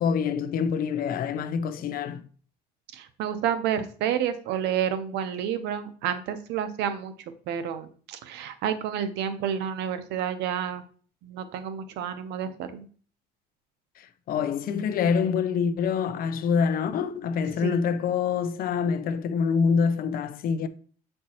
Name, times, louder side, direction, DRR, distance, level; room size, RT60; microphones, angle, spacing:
voice 1, 0.0-2.2 14.3-20.7, left 6 dB, 60° left, 0.6 m, -26 dB
voice 2, 2.9-7.1 7.5-10.8 11.2-12.8 17.6-17.9, right 9 dB, 85° right, 0.7 m, -30 dB
7.4 x 4.4 x 2.9 m
cardioid pair, 110°, 17 cm